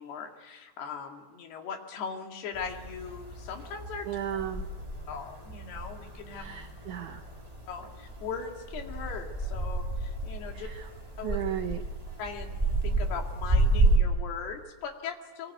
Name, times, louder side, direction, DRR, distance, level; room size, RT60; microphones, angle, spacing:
voice 1, 0.0-4.1 5.1-6.5 7.7-10.7 11.2-11.4 12.2-12.6 12.8-15.5, left 6 dB, 70° left, 3 dB, 4.1 m, -39 dB
sound 1, 2.5-14.0, right 2 dB, 10° right, 2.5 m, -31 dB
voice 2, 4.1-4.7 6.3-7.2 10.5-10.8 11.2-11.8, right 10 dB, 85° right, 7 dB, 1.7 m, -35 dB
23.5 x 22.5 x 9.3 m, 1.2 s
omnidirectional pair, 5.0 m